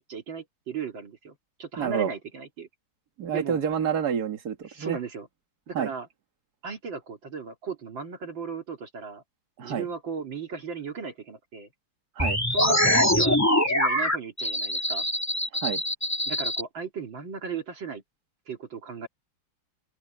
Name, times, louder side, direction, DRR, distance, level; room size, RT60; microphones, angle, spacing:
voice 1, 0.0-2.7 3.3-3.6 4.7-5.3 5.7-6.1 6.6-9.2 9.6-11.7 12.5-13.4 13.6-15.1 16.3-18.0 18.5-19.1, right 5 dB, 65° right, 3.3 m, -36 dB
voice 2, 1.8-2.1 3.2-5.0 5.7-5.9 9.6-9.9 12.2-12.4 15.6-15.8, right 8 dB, 50° right, 2.2 m, -28 dB
sound 1, 12.2-16.6, left 1 dB, 5° left, 2.9 m, -24 dB
omnidirectional pair, 2.3 m